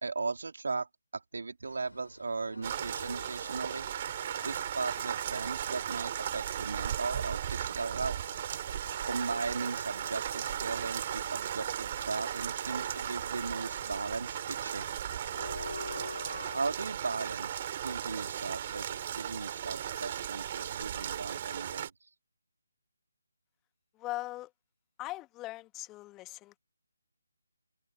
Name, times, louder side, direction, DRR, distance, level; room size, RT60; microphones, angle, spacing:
voice 1, 0.0-0.9 1.1-3.9 4.4-8.2 9.1-14.9 16.5-21.9, right 4 dB, 55° right, 3.7 m, -37 dB
Train, 1.6-16.6, left 2 dB, 70° left, 7.1 m, -49 dB
sound 1, 2.6-21.9, right 10 dB, 30° right, 4.6 m, -36 dB
voice 2, 24.0-24.5 25.0-26.6, left 17 dB, 15° left, 1.8 m, -40 dB
open air
figure-of-eight pair, 150°, 0 cm